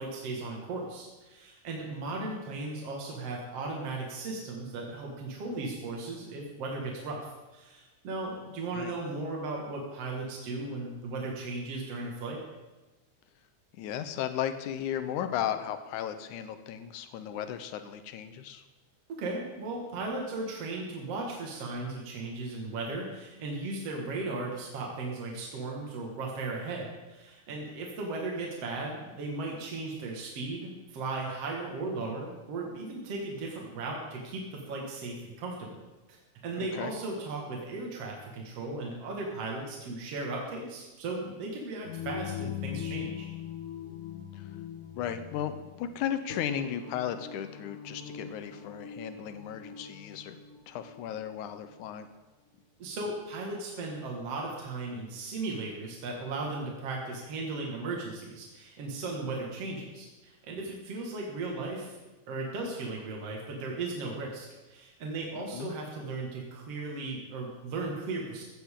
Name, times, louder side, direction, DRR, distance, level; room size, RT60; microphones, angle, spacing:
voice 1, 0.0-12.4 19.1-35.8 36.1-36.2 36.4-43.3 52.8-62.0 62.3-68.4, right 3 dB, 55° right, -1 dB, 2.8 m, -36 dB
voice 2, 13.8-18.6 36.6-36.9 44.3-44.5 45.0-50.4 50.7-52.1 65.5-65.7, left 10 dB, 90° left, 10 dB, 2.3 m, -35 dB
sound 1, 41.8-51.7, left 8 dB, 70° left, 0.6 m, -41 dB
15.0 x 15.0 x 3.7 m, 1.2 s
omnidirectional pair, 3.4 m